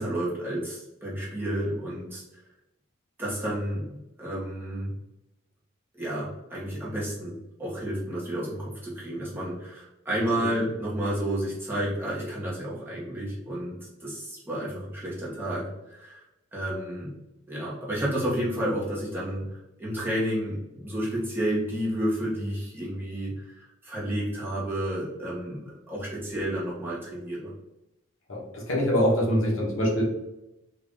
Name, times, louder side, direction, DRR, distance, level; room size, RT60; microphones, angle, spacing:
voice 1, 0.0-2.2 3.2-3.9 4.2-4.9 5.9-16.2 16.5-17.2 17.5-27.5, right 1 dB, 10° right, -7 dB, 1.0 m, -31 dB
voice 2, 28.3-30.0, equal, 70° left, -3 dB, 1.2 m, -24 dB
3.8 x 2.5 x 3.5 m, 0.92 s
head